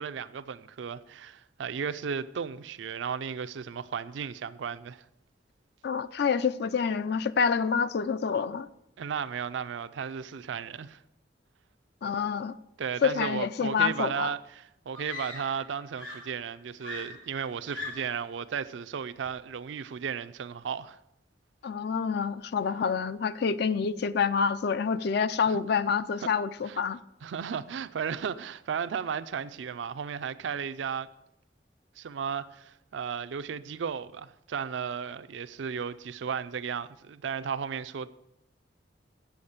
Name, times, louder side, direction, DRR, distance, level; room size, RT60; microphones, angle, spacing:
voice 1, 0.0-5.0 9.0-11.0 12.8-21.0 25.5-25.6 26.2-26.3 26.7-26.8 27.2-31.1 32.0-38.1, right 7 dB, 80° right, 0.4 m, -34 dB
voice 2, 5.8-8.7 12.0-12.5 13.0-14.3 21.6-27.0, left 6 dB, 60° left, 0.4 m, -27 dB
Screaming, 14.9-15.7 16.0-18.3 19.3-19.5, left 2 dB, 85° left, 3.4 m, -41 dB
7.8 x 7.1 x 6.5 m
head